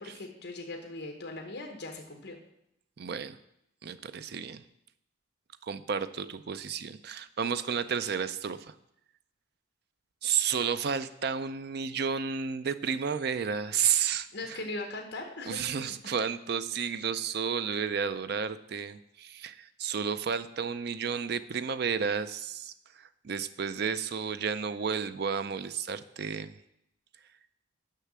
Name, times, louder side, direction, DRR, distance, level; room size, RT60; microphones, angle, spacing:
voice 1, 0.0-2.4 14.3-16.0, left 2 dB, 60° left, 2 dB, 1.0 m, -40 dB
voice 2, 3.0-3.4 3.8-4.6 5.6-8.7 10.2-14.6 15.5-26.5, right 6 dB, 55° right, 12 dB, 0.4 m, -32 dB
6.7 x 5.6 x 7.4 m, 0.79 s
head